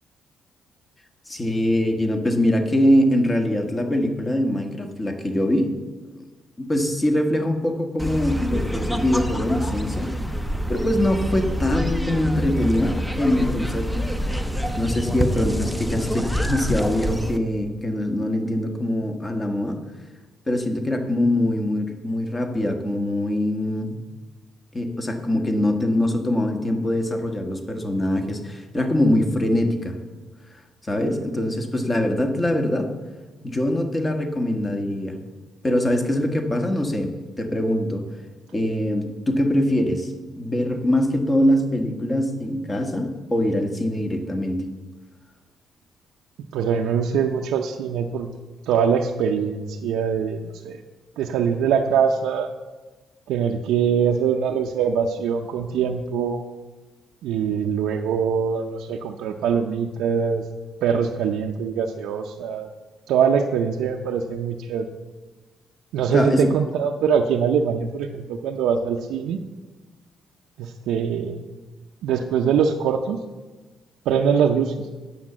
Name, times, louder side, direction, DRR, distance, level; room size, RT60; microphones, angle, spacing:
voice 1, 1.3-5.7 6.6-10.1 10.7-14.1 14.8-19.8 20.5-24.0 24.7-30.0 30.9-32.9 33.4-35.2 35.6-38.0 38.5-44.6 66.1-66.5, left 1 dB, 25° left, 4 dB, 1.6 m, -23 dB
sound 1, 8.0-17.4, equal, 5° left, 0.9 m, -27 dB
voice 2, 46.5-48.3 48.6-50.8 51.2-52.5 53.3-56.4 57.2-60.4 60.8-62.7 63.1-64.9 65.9-69.4 70.6-71.4 72.0-73.2 74.1-74.7, right 7 dB, 85° right, 1 dB, 0.6 m, -23 dB
9.6 x 7.0 x 7.3 m, 1.3 s
cardioid pair, 90°, 0 cm